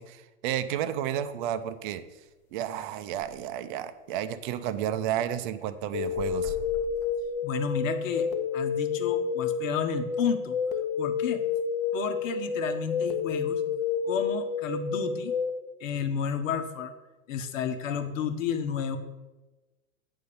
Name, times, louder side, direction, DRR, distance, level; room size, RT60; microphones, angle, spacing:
voice 1, 0.0-2.0 2.5-6.6, right 10 dB, 35° right, 10 dB, 0.6 m, -32 dB
sound 1, 1.6-1.9 2.3-2.4 2.6-2.7 3.0-3.4 3.9-4.0 4.4-5.2 5.5-7.7, left 1 dB, 5° left, 0.3 m, -44 dB
sound 2, 5.9-15.5, left 6 dB, 35° left, 1.0 m, -30 dB
voice 2, 7.4-10.6 11.0-11.4 11.9-13.6 14.0-15.4 15.8-16.9 17.3-19.0, left 7 dB, 60° left, 7 dB, 1.4 m, -31 dB
9.1 x 4.1 x 6.9 m, 1.1 s
hypercardioid pair, 130°, 43 cm